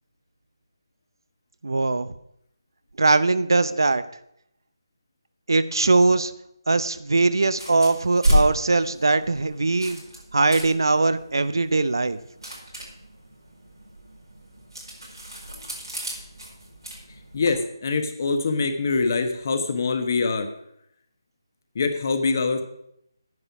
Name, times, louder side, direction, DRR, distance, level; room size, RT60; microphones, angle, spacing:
voice 1, 1.6-2.1 3.0-4.0 5.5-6.3 6.7-10.0 10.3-12.2, right 3 dB, 65° right, 14 dB, 0.6 m, -21 dB
sound 1, 7.5-17.6, equal, 85° right, 4.7 m, -31 dB
voice 2, 17.3-20.5 21.7-22.6, left 4 dB, 40° left, 7 dB, 1.2 m, -24 dB
9.6 x 6.8 x 6.1 m, 0.74 s
figure-of-eight pair, 155°, 2 cm